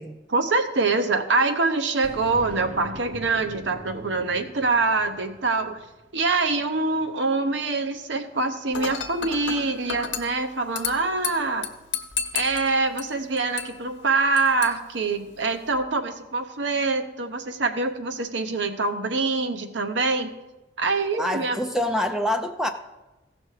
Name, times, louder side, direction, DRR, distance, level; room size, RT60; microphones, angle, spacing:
voice 1, 0.3-5.8 6.1-11.7 12.3-20.3 20.8-21.6, right 3 dB, 65° right, 8 dB, 0.9 m, -25 dB
Boom, 2.0-6.7, right 1 dB, 35° right, 0.8 m, -43 dB
Dishes pots and pans / Glass, 8.7-15.7, left 7 dB, 65° left, 1.0 m, -34 dB
voice 2, 21.2-22.7, left 1 dB, 5° right, 6 dB, 0.4 m, -26 dB
15.5 x 6.2 x 4.8 m, 1.1 s
head